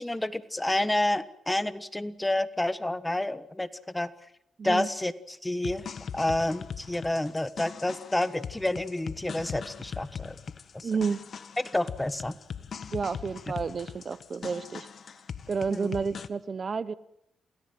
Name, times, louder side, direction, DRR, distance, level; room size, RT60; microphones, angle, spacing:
voice 1, 0.0-3.7 3.9-4.1 4.6-5.9 6.1-10.3 11.7-12.3 15.7-15.9, left 1 dB, 10° left, 13 dB, 1.4 m, -29 dB
sound 1, 5.6-16.3, left 7 dB, 55° left, 1.5 m, -41 dB
voice 2, 10.8-11.2 12.9-14.9 15.5-16.9, right 5 dB, 45° right, 16 dB, 0.9 m, -30 dB
28.0 x 18.5 x 7.7 m, 0.78 s
cardioid pair, 90°, 0 cm